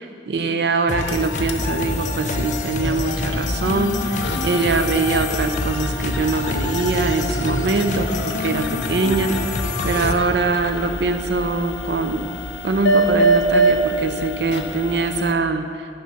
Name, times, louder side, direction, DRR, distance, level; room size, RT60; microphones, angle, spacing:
voice 1, 0.0-12.4 12.6-15.9, right 3 dB, 65° right, 8 dB, 0.5 m, -23 dB
sound 1, 0.9-15.3, right 2 dB, 85° left, 0.6 m, -26 dB
sound 2, 0.9-10.1, left 3 dB, 45° left, 0.5 m, -26 dB
10.0 x 3.7 x 5.7 m, 2.5 s
head